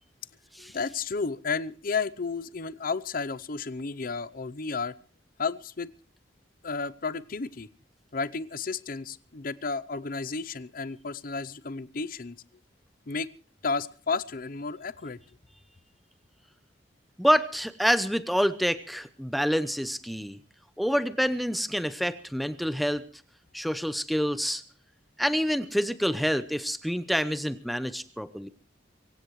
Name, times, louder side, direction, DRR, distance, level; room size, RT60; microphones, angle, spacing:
voice 1, 0.6-5.0 5.4-5.9 6.6-7.7 8.1-12.4 13.1-13.3 13.6-15.2, left 4 dB, 50° left, 17 dB, 0.7 m, -32 dB
voice 2, 17.2-20.4 20.8-23.0 23.5-24.6 25.2-28.5, equal, ahead, 12 dB, 0.7 m, -27 dB
24.0 x 16.0 x 3.1 m, 0.41 s
head